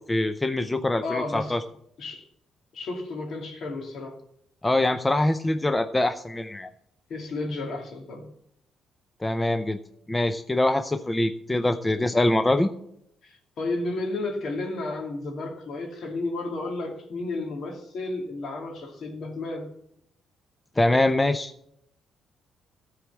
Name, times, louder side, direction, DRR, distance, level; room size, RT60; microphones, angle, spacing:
voice 1, 0.1-1.6 4.6-6.7 9.2-9.8 10.1-12.7 20.8-21.5, left 1 dB, 15° left, 10 dB, 0.6 m, -24 dB
voice 2, 1.0-1.6 2.0-2.2 2.7-4.2 7.1-8.3 13.2-19.7, left 2 dB, 65° left, 2 dB, 2.6 m, -32 dB
13.5 x 4.8 x 7.5 m, 0.73 s
cardioid pair, 90°, 0 cm